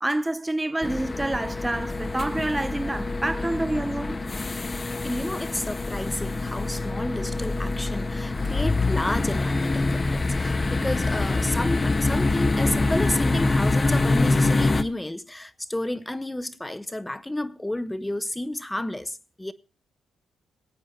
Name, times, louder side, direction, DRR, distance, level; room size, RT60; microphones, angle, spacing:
voice 1, 0.0-4.2, right 1 dB, 15° right, 0.5 m, -28 dB
sound 1, 0.8-14.8, left 3 dB, 30° left, 1.1 m, -25 dB
voice 2, 4.6-19.5, left 1 dB, 10° left, 1.0 m, -31 dB
20.5 x 8.6 x 4.2 m
supercardioid pair, 55°, 0 cm